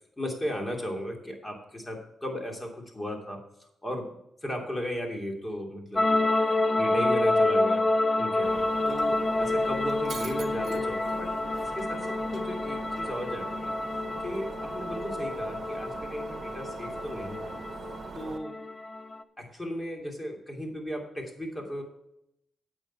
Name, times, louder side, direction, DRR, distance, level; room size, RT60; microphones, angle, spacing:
voice 1, 0.2-6.1 6.8-7.8 8.2-13.7 14.2-17.5 18.1-18.6 19.4-21.8, equal, 20° left, 1 dB, 3.0 m, -36 dB
sound 1, 6.0-19.2, left 2 dB, 35° left, 0.7 m, -28 dB
Shatter, 8.4-18.4, right 6 dB, 65° right, 1.0 m, -42 dB
8.9 x 8.2 x 4.6 m, 0.78 s
cardioid pair, 80°, 0 cm